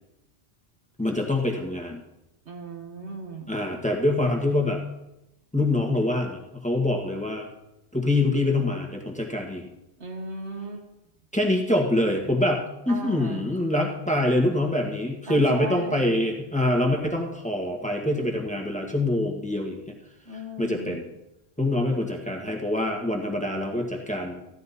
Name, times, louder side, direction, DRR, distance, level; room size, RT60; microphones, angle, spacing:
voice 1, 1.0-2.0 3.5-4.8 5.5-7.5 7.9-9.7 11.3-19.9 20.6-21.0 21.6-24.4, left 1 dB, 5° left, 1 dB, 1.6 m, -25 dB
voice 2, 2.5-3.5 10.0-10.8 12.9-13.5 15.3-16.2 20.3-21.0, right 2 dB, 85° right, 2 dB, 1.9 m, -37 dB
15.5 x 12.0 x 4.1 m, 0.91 s
omnidirectional pair, 1.1 m